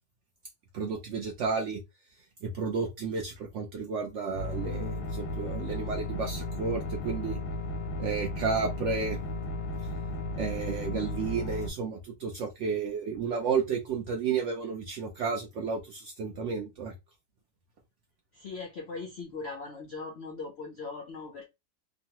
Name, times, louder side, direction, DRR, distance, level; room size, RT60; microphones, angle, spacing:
voice 1, 0.7-1.8 2.4-7.4 8.0-9.2 10.4-16.9, right 5 dB, 70° right, 0.7 m, -32 dB
sound 1, 4.3-11.7, left 2 dB, 90° left, 1.2 m, -34 dB
voice 2, 18.3-21.5, left 4 dB, 70° left, 0.6 m, -39 dB
2.9 x 2.2 x 2.8 m
omnidirectional pair, 1.7 m